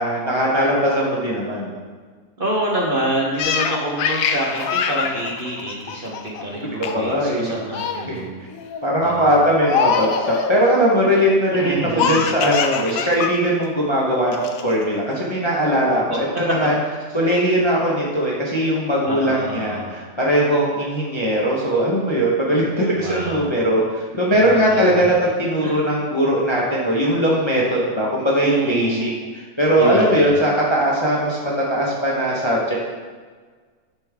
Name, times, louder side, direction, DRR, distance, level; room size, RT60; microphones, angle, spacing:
voice 1, 0.0-1.8 6.9-7.5 8.1-8.2 8.8-16.7 17.1-32.8, equal, 20° left, -4 dB, 0.9 m, -20 dB
voice 2, 2.4-8.4 9.0-9.5 11.5-12.4 12.9-13.1 16.1-16.2 19.0-19.9 22.9-23.5 24.4-25.0 25.6-25.8 28.4-29.1 29.8-30.5, right 1 dB, 40° right, -3 dB, 1.1 m, -27 dB
Laughter, 3.4-6.4 6.8-7.1 7.4-8.1 8.5-8.9 9.6-10.6 12.0-13.3 13.6-13.7 14.3-14.8, left 6 dB, 65° left, 0.9 m, -23 dB
9.9 x 5.5 x 3.6 m, 1.5 s
omnidirectional pair, 1.7 m